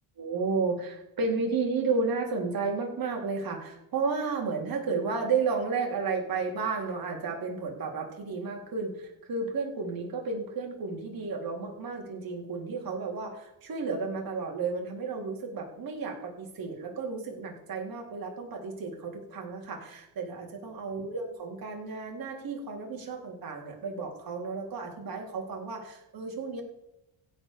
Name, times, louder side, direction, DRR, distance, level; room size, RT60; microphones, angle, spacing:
voice 1, 0.2-26.6, right 4 dB, 45° right, 0 dB, 3.9 m, -32 dB
16.0 x 5.5 x 6.9 m, 0.85 s
cardioid pair, 135°, 47 cm